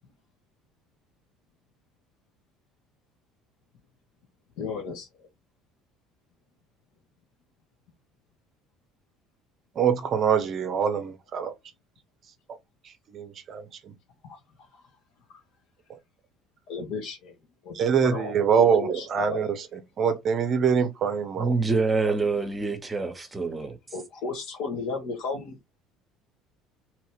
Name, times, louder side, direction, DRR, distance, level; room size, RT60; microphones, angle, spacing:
voice 1, 4.6-5.1 14.2-14.4 16.7-17.3 17.6-17.7 18.0-18.3 18.7-19.4 23.9-25.6, left 4 dB, 60° left, 1.1 m, -34 dB
voice 2, 9.8-11.5 13.1-13.6 17.7-19.7 20.0-21.5, right 7 dB, 45° right, 0.6 m, -24 dB
voice 3, 21.4-23.8, right 3 dB, 20° right, 1.0 m, -26 dB
2.9 x 2.7 x 3.1 m
hypercardioid pair, 60°, 0 cm